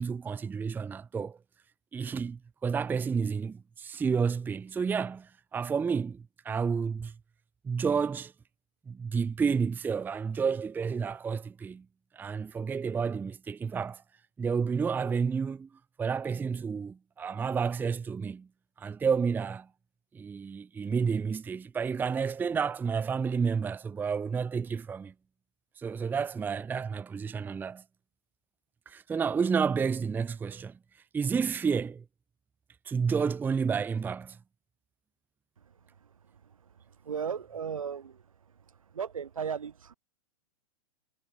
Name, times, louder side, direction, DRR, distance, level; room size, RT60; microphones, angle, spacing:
voice 1, 0.0-1.4 1.9-7.1 7.6-8.3 8.9-11.8 12.1-14.0 14.4-15.7 16.0-18.5 18.8-19.7 20.1-25.1 25.8-27.8 28.9-30.7 31.1-32.0 32.9-34.4, right 6 dB, 10° right, 0.6 m, -30 dB
voice 2, 37.0-38.2 38.9-39.9, right 7 dB, 70° right, 1.6 m, -35 dB
figure-of-eight pair, 105°, 18 cm